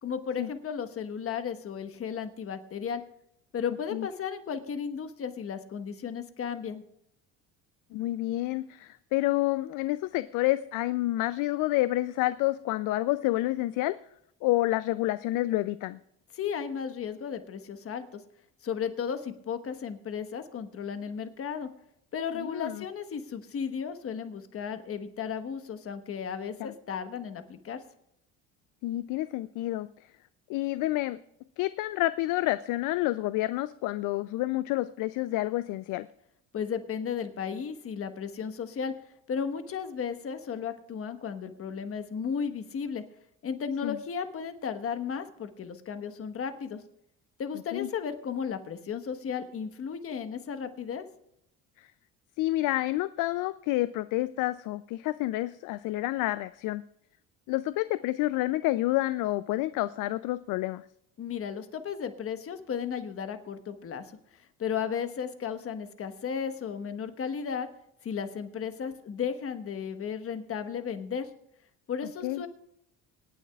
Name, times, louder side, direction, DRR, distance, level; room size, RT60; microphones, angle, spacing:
voice 1, 0.0-3.0 3.5-6.8 16.3-18.2 18.6-21.7 22.1-27.8 36.5-38.9 39.3-43.0 43.4-46.8 47.4-51.0 61.2-67.7 68.0-71.3 71.9-72.5, left 7 dB, 45° left, 9 dB, 1.3 m, -34 dB
voice 2, 7.9-13.9 14.4-16.0 22.3-22.8 26.6-26.7 28.8-29.9 30.5-31.2 31.6-36.1 43.8-44.0 47.7-47.9 51.8-51.9 52.4-56.8 57.5-60.8 72.2-72.4, left 17 dB, 70° left, 15 dB, 0.5 m, -29 dB
25.5 x 9.2 x 2.4 m, 0.76 s
cardioid pair, 100°, 33 cm